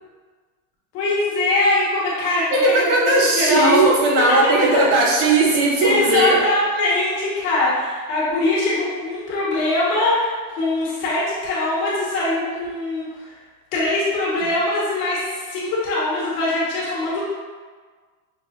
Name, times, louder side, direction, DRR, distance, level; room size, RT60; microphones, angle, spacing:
voice 1, 0.9-3.9 4.6-4.8 5.5-5.6 5.8-13.4 13.7-17.2, left 2 dB, 45° left, -7 dB, 1.5 m, -22 dB
voice 2, 2.5-6.4, right 2 dB, 50° right, 0 dB, 0.5 m, -17 dB
6.0 x 2.5 x 2.5 m, 1.5 s
supercardioid pair, 175°, 48 cm